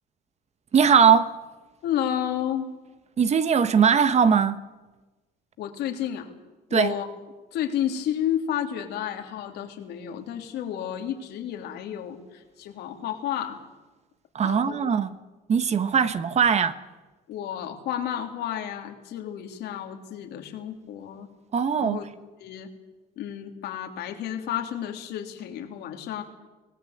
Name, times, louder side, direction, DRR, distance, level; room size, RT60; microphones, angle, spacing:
voice 1, 0.7-1.3 3.2-4.6 6.7-6.9 14.3-15.1 15.5-16.7 21.5-22.0, right 7 dB, 40° right, 1.3 m, -20 dB
voice 2, 1.8-2.7 5.6-6.3 6.7-7.1 7.5-13.6 14.4-14.8 17.3-21.3 21.8-22.1 22.4-22.7 23.2-26.2, left 10 dB, 80° left, 3.2 m, -31 dB
24.5 x 17.5 x 8.1 m
cardioid pair, 110°, 17 cm